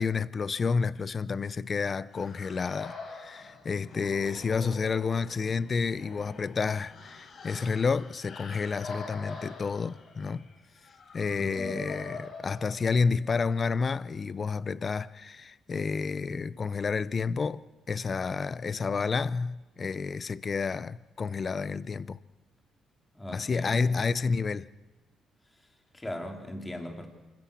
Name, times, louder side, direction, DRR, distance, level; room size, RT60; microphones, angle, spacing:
voice 1, 0.0-10.4 11.1-22.2 23.3-24.7, left 5 dB, 40° left, 0.7 m, -30 dB
sound 1, 2.1-13.2, left 3 dB, 55° left, 4.8 m, -44 dB
voice 2, 11.4-11.9 23.1-23.8 25.6-25.7 25.9-27.1, left 1 dB, 15° left, 3.5 m, -39 dB
26.5 x 14.0 x 8.6 m
cardioid pair, 90°, 0 cm